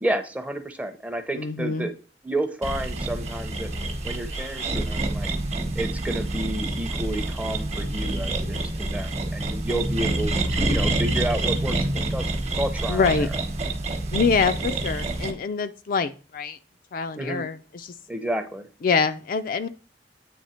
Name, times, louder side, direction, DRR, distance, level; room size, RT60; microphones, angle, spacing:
voice 1, 0.0-1.9 2.2-3.7 4.0-5.3 5.8-12.3 12.6-13.3 17.2-17.4 18.1-18.7, right 1 dB, 10° right, 8 dB, 0.6 m, -30 dB
voice 2, 1.4-1.9 12.9-13.3 14.1-16.6 16.9-17.9 18.8-19.7, left 5 dB, 50° left, 9 dB, 0.4 m, -25 dB
sound 1, 2.6-15.3, right 2 dB, 40° right, 0.9 m, -27 dB
8.5 x 3.3 x 4.2 m, 0.37 s
head